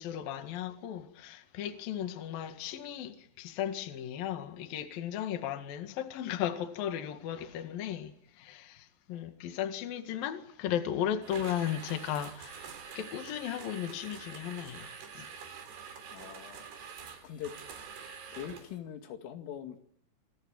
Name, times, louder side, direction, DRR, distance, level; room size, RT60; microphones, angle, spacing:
voice 1, 0.0-12.7 13.0-15.3, left 10 dB, 55° left, 3.2 m, -36 dB
sound 1, 11.2-18.8, right 6 dB, 60° right, 5.2 m, -46 dB
voice 2, 16.1-16.9 17.2-17.5 18.3-19.8, left 10 dB, 80° left, 4.8 m, -43 dB
27.5 x 22.0 x 8.9 m
omnidirectional pair, 5.7 m